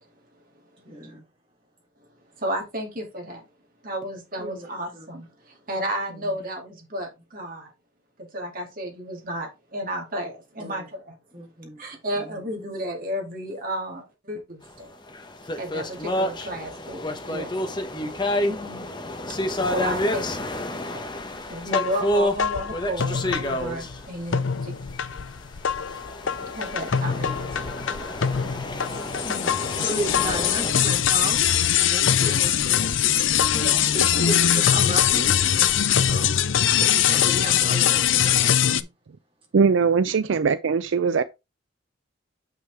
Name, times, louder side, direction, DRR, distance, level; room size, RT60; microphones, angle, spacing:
voice 1, 0.8-1.2 4.4-4.7 4.9-5.0 10.6-10.7 11.3-11.8 12.1-12.3 17.9-18.1 27.1-27.6 29.8-33.0 33.9-35.5 36.0-36.3 36.7-38.9 40.0-40.2, equal, 30° right, 3.4 m, -34 dB
voice 2, 2.4-3.4 3.8-7.7 8.2-11.2 11.8-14.9 15.6-17.5 18.4-18.9 19.3-19.4 19.6-20.5 21.4-24.8 26.5-27.7 29.2-29.5 33.5-33.9, right 1 dB, 45° right, 2.4 m, -33 dB
sound 1, 15.1-24.8 25.6-30.7, left 1 dB, 25° left, 0.9 m, -29 dB
sound 2, 21.6-24.0 24.3-38.8, left 9 dB, 75° left, 0.6 m, -22 dB
voice 3, 39.5-41.2, right 5 dB, 75° right, 0.4 m, -20 dB
7.4 x 5.7 x 3.4 m
head